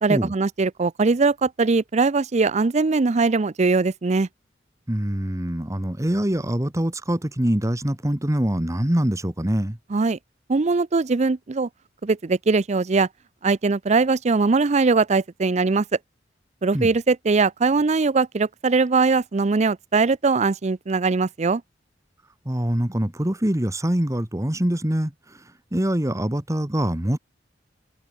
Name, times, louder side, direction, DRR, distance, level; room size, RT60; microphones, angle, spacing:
voice 1, 0.0-4.3 9.9-10.2 10.5-11.7 12.0-13.1 13.4-15.8 16.6-21.6, right 4 dB, 40° right, 0.5 m, -21 dB
voice 2, 4.9-9.8 16.7-16.9 22.4-27.2, right 1 dB, 15° right, 1.5 m, -24 dB
head